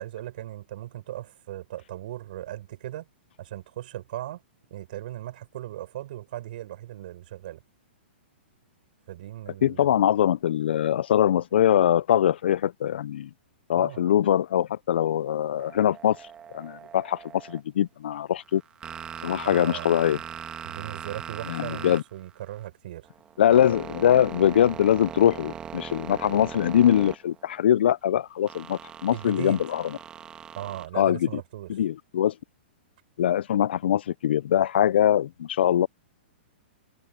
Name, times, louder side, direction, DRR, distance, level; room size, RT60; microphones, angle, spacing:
voice 1, 0.0-3.1 3.4-4.4 4.7-7.6 9.1-10.0 13.8-14.0 19.4-20.0 20.6-23.1 29.1-29.6 30.6-31.7, right 14 dB, 50° right, 5.6 m, -38 dB
voice 2, 9.6-13.3 13.7-16.2 16.5-17.2 17.5-18.6 19.2-20.2 21.5-22.0 23.4-29.8 31.0-31.2 31.7-32.3 33.2-35.9, left 10 dB, 65° left, 0.4 m, -22 dB
sound 1, 15.6-17.6 18.4-22.7 23.0-27.6 28.5-30.9, right 9 dB, 15° right, 1.6 m, -40 dB
hypercardioid pair, 165°, 6 cm